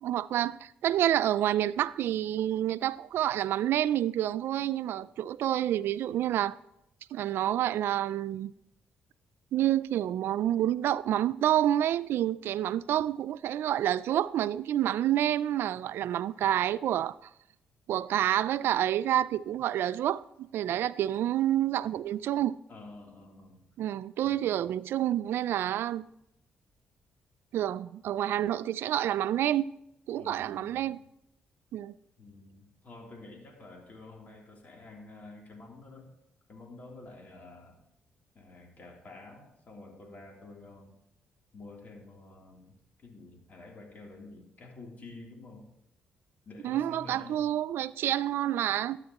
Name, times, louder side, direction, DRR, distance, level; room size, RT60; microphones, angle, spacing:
voice 1, 0.0-6.6 7.1-8.5 9.5-17.2 17.9-22.6 23.8-26.1 27.5-29.7 30.1-31.0 31.7-31.9 46.6-49.0, right 12 dB, 80° right, 0.4 m, -28 dB
voice 2, 22.7-23.7 24.2-24.7 30.1-31.0 32.2-36.1 36.5-37.8 38.3-41.0 41.5-42.8 43.0-45.7 46.4-47.4, left 2 dB, 45° left, 3.2 m, -49 dB
13.0 x 9.7 x 3.0 m
cardioid pair, 80°, 4 cm